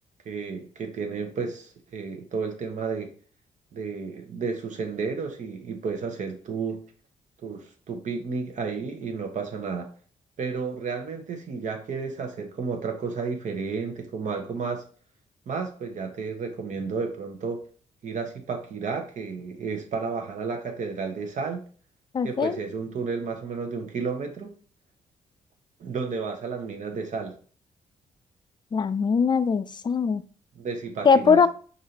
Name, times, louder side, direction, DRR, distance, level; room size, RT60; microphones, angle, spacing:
voice 1, 0.2-3.1 3.7-6.8 7.4-9.9 10.4-14.8 15.5-17.6 18.0-21.6 22.2-24.5 25.8-27.4 30.6-31.5, right 5 dB, 60° right, 0.9 m, -32 dB
voice 2, 22.1-22.6 28.7-30.2 31.1-31.5, left 5 dB, 35° left, 0.4 m, -21 dB
4.8 x 2.6 x 2.8 m
supercardioid pair, 60°, 14 cm